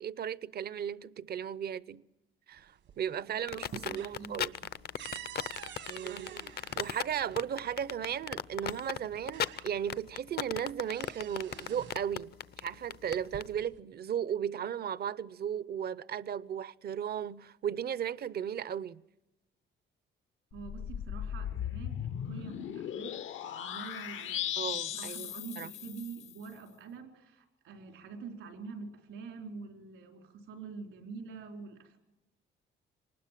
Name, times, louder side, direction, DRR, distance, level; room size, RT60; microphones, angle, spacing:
voice 1, 0.0-2.0 2.5-4.5 5.1-5.2 5.9-19.0 24.6-25.3 25.6-25.7, right 9 dB, 55° right, 0.7 m, -36 dB
sound 1, 2.6-3.2 3.5-7.5 8.6-8.7 9.1-10.1 10.4-12.1 13.0-13.8, right 9 dB, 70° right, 1.4 m, -48 dB
voice 2, 3.3-4.5 20.5-32.0, right 5 dB, 85° right, 4.0 m, -46 dB
sound 2, 3.5-13.5, left 9 dB, 55° left, 0.7 m, -36 dB
sound 3, 20.5-26.3, left 10 dB, 80° left, 1.0 m, -38 dB
24.5 x 20.0 x 7.5 m
cardioid pair, 90°, 20 cm